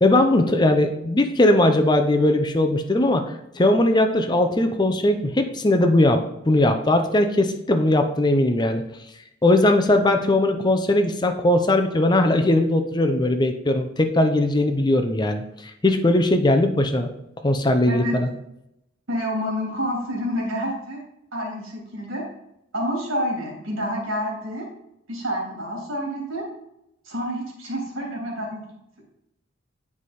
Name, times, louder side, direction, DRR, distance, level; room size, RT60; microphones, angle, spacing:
voice 1, 0.0-8.8 9.4-17.1 17.4-18.3, left 1 dB, 20° left, 6 dB, 0.6 m, -19 dB
voice 2, 17.9-18.2 19.1-21.0 21.3-22.3 22.7-24.7 25.1-26.5 27.0-28.7, equal, 85° right, 0 dB, 2.9 m, -28 dB
9.3 x 4.8 x 4.2 m, 0.83 s
head